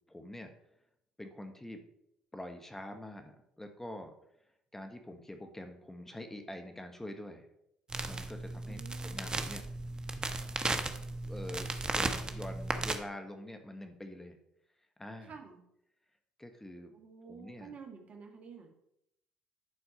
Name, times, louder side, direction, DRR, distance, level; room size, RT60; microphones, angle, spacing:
voice 1, 0.1-0.5 1.2-1.8 2.3-4.1 4.7-7.5 8.1-9.6 10.6-10.8 11.3-14.4 15.0-15.4 16.4-16.9 17.2-17.7, left 1 dB, 10° left, 5 dB, 1.3 m, -45 dB
sound 1, 7.9-13.0, right 2 dB, 25° right, 1.2 m, -35 dB
voice 2, 8.7-9.4 15.3-15.6 16.9-18.7, right 5 dB, 50° right, 3 dB, 1.9 m, -50 dB
11.0 x 4.6 x 5.1 m, 0.77 s
hypercardioid pair, 55°, 3 cm